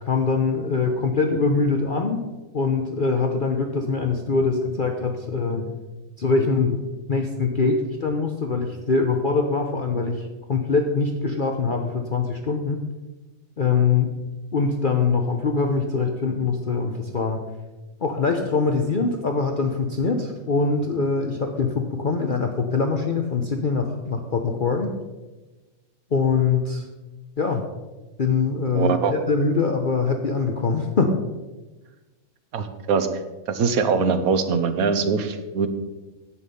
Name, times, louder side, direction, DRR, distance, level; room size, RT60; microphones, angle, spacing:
voice 1, 0.0-2.3 2.5-5.8 6.2-6.8 7.1-12.8 13.6-14.1 14.5-17.4 18.0-24.9 26.1-26.8 27.4-27.6 28.2-31.1, left 4 dB, 45° left, 4 dB, 0.8 m, -23 dB
voice 2, 28.7-29.1 32.5-33.1 33.5-35.7, right 5 dB, 80° right, 9 dB, 1.4 m, -22 dB
9.9 x 8.1 x 5.4 m, 1.2 s
omnidirectional pair, 1.5 m